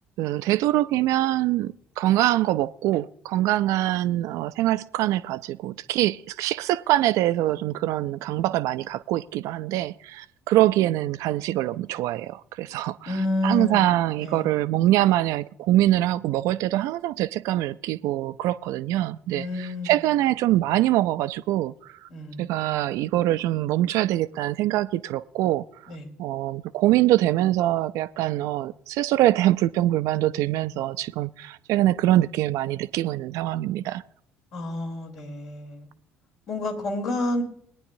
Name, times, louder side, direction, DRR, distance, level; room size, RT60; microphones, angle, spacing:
voice 1, 0.2-13.1 13.4-22.1 22.4-25.7 26.2-34.0, right 14 dB, 60° right, 0.4 m, -24 dB
voice 2, 13.1-14.5 19.3-20.0 22.1-22.5 25.9-26.1 34.5-35.9 36.5-37.4, left 2 dB, 65° left, 3.3 m, -30 dB
21.5 x 9.7 x 2.6 m
figure-of-eight pair, 50°, 6 cm